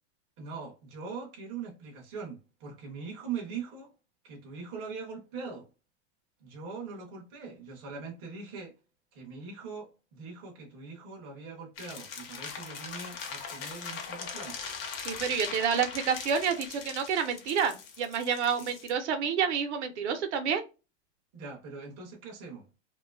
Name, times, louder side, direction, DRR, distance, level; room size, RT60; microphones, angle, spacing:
voice 1, 0.4-3.9 4.2-5.7 6.4-8.7 9.1-14.6 18.6-18.7 21.3-22.6, right 5 dB, 25° right, 0.4 m, -41 dB
sound 1, 11.8-18.9, left 6 dB, 50° left, 0.6 m, -40 dB
voice 2, 15.0-20.6, right 7 dB, 65° right, 0.6 m, -29 dB
2.5 x 2.3 x 2.2 m
supercardioid pair, 175°, 37 cm